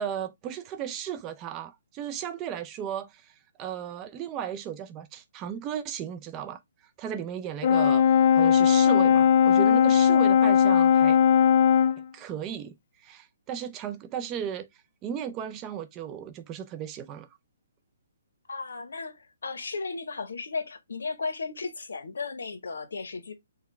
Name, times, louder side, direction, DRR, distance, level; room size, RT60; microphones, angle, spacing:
voice 1, 0.0-3.3 3.6-6.6 7.0-8.0 8.3-11.2 12.1-12.7 13.0-14.7 15.0-17.3, right 9 dB, 20° right, 0.4 m, -35 dB
Brass instrument, 7.6-12.0, left 8 dB, 40° left, 0.4 m, -19 dB
voice 2, 18.5-23.3, left 4 dB, 85° left, 0.8 m, -35 dB
4.8 x 2.2 x 3.0 m
hypercardioid pair, 155°, 0 cm